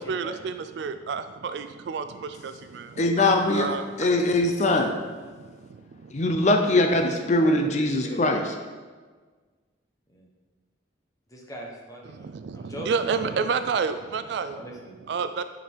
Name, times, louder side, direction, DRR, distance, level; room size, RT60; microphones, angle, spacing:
voice 1, 0.0-3.0 3.5-4.2 5.4-6.1 12.1-14.6 15.1-15.4, right 5 dB, 60° right, 10 dB, 0.3 m, -30 dB
voice 2, 3.0-4.9 6.1-8.5, left 2 dB, 35° left, 4 dB, 0.6 m, -22 dB
voice 3, 6.7-7.1 7.4-8.2 10.1-10.3 11.3-12.9 13.3-13.4 14.5-15.0, equal, 15° left, -2 dB, 1.2 m, -42 dB
9.2 x 5.1 x 4.6 m, 1.4 s
head